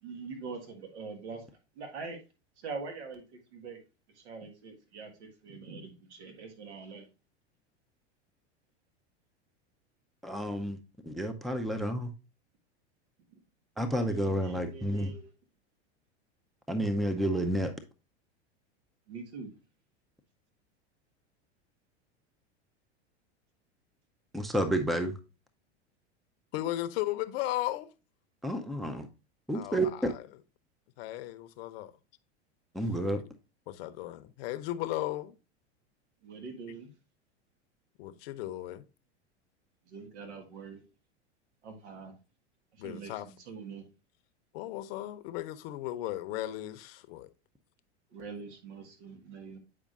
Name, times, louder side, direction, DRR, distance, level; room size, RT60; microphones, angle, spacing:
voice 1, 0.0-2.2 2.6-3.8 4.1-7.1 13.3-13.4 14.0-15.3 19.1-19.5 36.2-36.9 39.9-40.8 41.6-42.1 42.7-43.8 48.1-49.6, right 4 dB, 80° right, 1.6 m, -44 dB
voice 2, 10.2-10.8 11.0-12.1 13.8-15.1 16.7-17.7 24.3-25.1 28.4-29.1 29.5-30.1 32.7-33.2, right 1 dB, ahead, 0.5 m, -30 dB
voice 3, 26.5-27.9 29.5-30.2 31.0-31.9 33.7-35.4 36.7-36.8 38.0-38.8 42.8-43.3 44.5-47.3, left 15 dB, 60° left, 0.7 m, -36 dB
8.4 x 5.0 x 2.4 m
hypercardioid pair, 105°, 34 cm